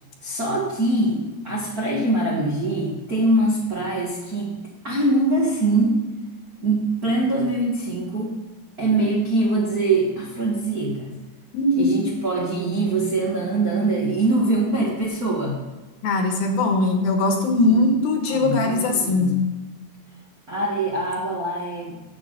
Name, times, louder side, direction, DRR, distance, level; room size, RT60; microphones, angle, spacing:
voice 1, 0.2-4.5 4.8-6.0 6.6-8.3 8.8-11.1 11.7-15.6 17.5-17.9 18.3-19.3 20.5-22.1, right 2 dB, 70° right, -4 dB, 0.8 m, -23 dB
voice 2, 11.5-11.9 16.0-19.3, left 2 dB, 70° left, 3 dB, 2.9 m, -20 dB
10.0 x 8.1 x 5.6 m, 1.2 s
omnidirectional pair, 4.9 m